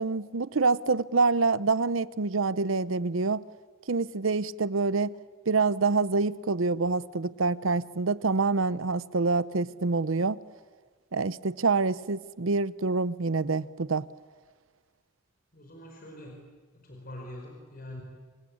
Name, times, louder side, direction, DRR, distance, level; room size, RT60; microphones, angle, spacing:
voice 1, 0.0-3.4 3.9-5.1 5.5-10.4 11.1-14.1, right 4 dB, 80° right, 0.8 m, -26 dB
voice 2, 15.5-18.0, left 1 dB, 45° left, 4.6 m, -44 dB
26.5 x 25.0 x 8.7 m
head